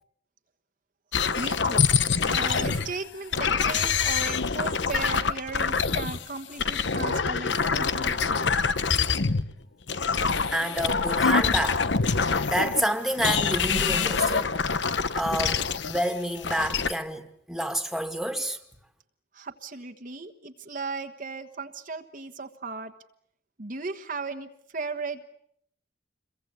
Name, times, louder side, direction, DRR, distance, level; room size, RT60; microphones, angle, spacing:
sound 1, 1.1-3.0 3.3-6.2 6.6-9.5 9.9-12.8 13.2-16.9, left 5 dB, 70° left, 1.0 m, -25 dB
voice 1, 1.3-1.9 2.2-8.2 19.3-22.9 23.6-25.3, right 4 dB, 45° right, 1.4 m, -36 dB
voice 2, 10.5-11.8 12.1-14.6 15.1-18.6, equal, ahead, 2.0 m, -29 dB
28.0 x 23.0 x 8.2 m
head